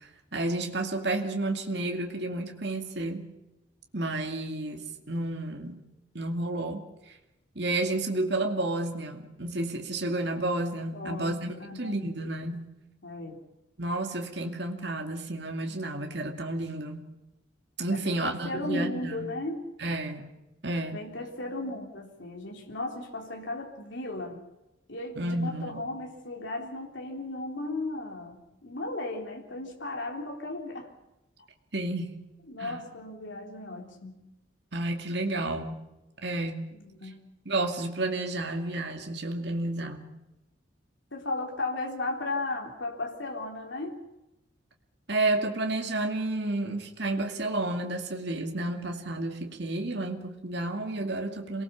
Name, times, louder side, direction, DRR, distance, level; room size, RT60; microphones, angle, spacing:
voice 1, 0.0-3.3 3.9-5.9 6.1-6.8 7.6-12.7 13.8-17.0 17.8-19.3 19.8-20.3 20.6-21.0 25.2-25.8 31.7-32.2 32.6-32.8 34.7-35.8 36.2-36.7 37.5-40.1 45.1-51.6, right 2 dB, 60° right, 3 dB, 2.4 m, -31 dB
voice 2, 10.9-12.0 13.0-13.4 17.9-19.7 20.9-24.4 24.9-30.9 32.5-34.2 36.8-37.2 41.1-44.0, left 2 dB, 75° left, 1 dB, 3.6 m, -35 dB
27.5 x 19.5 x 7.1 m, 0.95 s
head